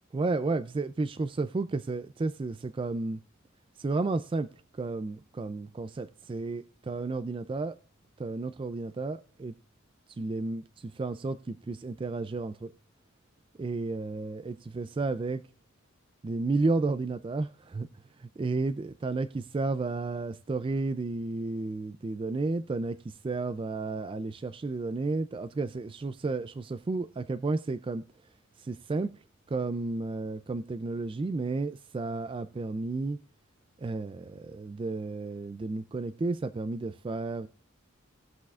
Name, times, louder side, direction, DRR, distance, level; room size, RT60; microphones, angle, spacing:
voice 1, 0.1-3.2 3.8-4.5 4.7-7.7 8.2-9.5 10.1-12.7 13.6-15.4 16.2-17.9 18.2-28.0 28.6-29.1 29.5-33.2 33.8-37.5, right 3 dB, 25° right, 0.3 m, -32 dB
19.0 x 6.3 x 2.4 m
head